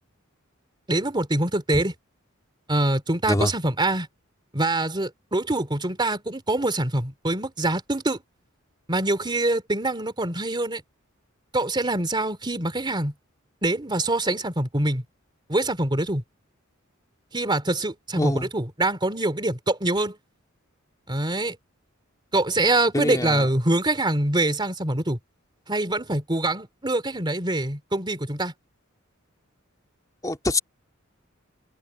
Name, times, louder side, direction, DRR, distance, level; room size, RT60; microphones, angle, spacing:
voice 1, 0.9-1.9 2.7-4.1 4.5-8.2 8.9-10.8 11.5-13.1 13.6-15.0 15.5-16.2 17.3-20.2 21.1-21.5 22.3-25.2 25.7-28.5, right 2 dB, 20° right, 3.3 m, -24 dB
voice 2, 18.2-18.5 22.9-23.5 30.2-30.6, left 1 dB, 15° left, 3.0 m, -24 dB
open air
head